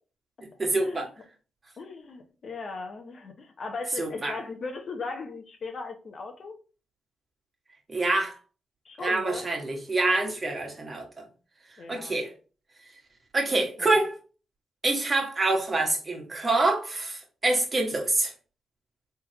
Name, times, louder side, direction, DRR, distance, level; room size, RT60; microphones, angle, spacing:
voice 1, 0.6-1.1 4.0-4.4 7.9-8.4 9.0-11.0 11.9-12.3 13.3-14.1 14.8-18.3, right 2 dB, 35° right, 1.5 m, -26 dB
voice 2, 1.8-6.5 8.8-9.5 10.0-10.2 11.8-12.2 13.5-13.9, left 4 dB, 55° left, 0.9 m, -38 dB
3.6 x 3.3 x 2.9 m
supercardioid pair, 60°, 0 cm